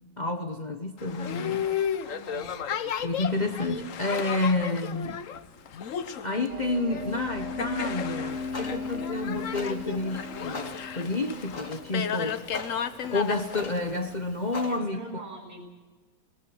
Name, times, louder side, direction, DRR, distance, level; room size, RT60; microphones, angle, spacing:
voice 1, 0.2-1.6 3.0-5.2 6.2-12.4 13.1-15.2, left 2 dB, 30° left, 1.2 m, -30 dB
Boat Water vehicle, 1.0-14.1, left 8 dB, 60° left, 1.2 m, -34 dB
voice 2, 2.0-2.7 14.7-15.6, right 2 dB, 35° right, 5.5 m, -43 dB
sound 1, 6.5-13.0, left 3 dB, 85° right, 2.5 m, -38 dB
Clock, 8.3-14.8, left 3 dB, 75° left, 3.0 m, -43 dB
21.5 x 18.0 x 7.8 m
omnidirectional pair, 1.6 m